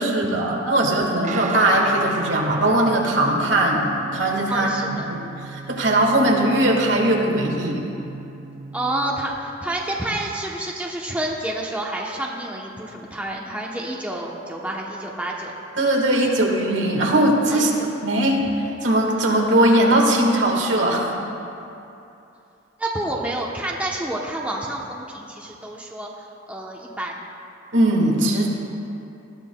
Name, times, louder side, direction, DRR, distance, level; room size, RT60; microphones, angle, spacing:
voice 1, 0.0-4.7 5.1-7.8 15.8-17.7 18.0-18.4 18.8-21.1 27.7-28.5, right 1 dB, 70° right, 0 dB, 1.6 m, -19 dB
Guitar, 1.2-9.3, right 4 dB, 40° right, 0.4 m, -36 dB
voice 2, 4.5-5.0 8.7-15.5 17.5-17.9 22.8-27.2, right 1 dB, 5° right, -2 dB, 0.8 m, -29 dB
19.0 x 12.5 x 2.3 m, 2.8 s
head